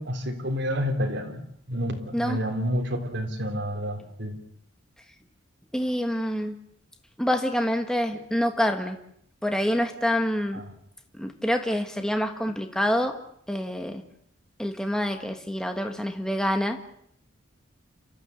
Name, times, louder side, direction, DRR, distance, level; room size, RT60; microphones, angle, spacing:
voice 1, 0.0-1.4 1.7-4.4 10.5-10.6, equal, 60° right, 3 dB, 3.6 m, -29 dB
voice 2, 5.7-6.6 7.2-9.0 9.4-10.6 11.1-13.2 13.5-14.0 14.6-16.8, equal, 5° left, 5 dB, 1.4 m, -26 dB
29.5 x 14.0 x 8.3 m, 0.71 s
head